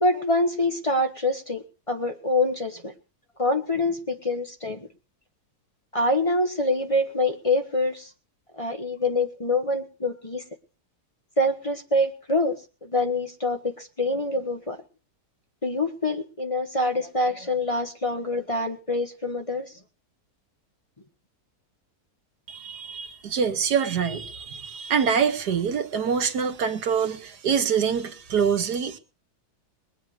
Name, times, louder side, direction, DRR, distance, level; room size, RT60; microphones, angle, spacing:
voice 1, 0.0-2.9 3.4-4.9 5.9-8.1 8.6-10.4 11.4-14.8 15.6-19.7, left 2 dB, 25° left, 1.1 m, -25 dB
voice 2, 22.5-29.0, right 7 dB, 85° right, 1.8 m, -25 dB
21.0 x 7.9 x 6.5 m
omnidirectional pair, 1.7 m